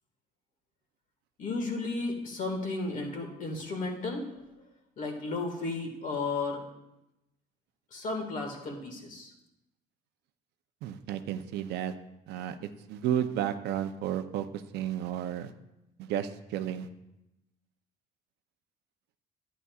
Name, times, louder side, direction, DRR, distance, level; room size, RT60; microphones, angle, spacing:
voice 1, 1.4-4.2 5.0-6.6 7.9-9.3, left 3 dB, 50° left, 2 dB, 1.9 m, -33 dB
voice 2, 10.8-11.9 12.3-15.5 16.0-16.9, right 10 dB, 80° right, 10 dB, 0.6 m, -32 dB
11.0 x 9.6 x 2.4 m, 0.92 s
cardioid pair, 110°, 17 cm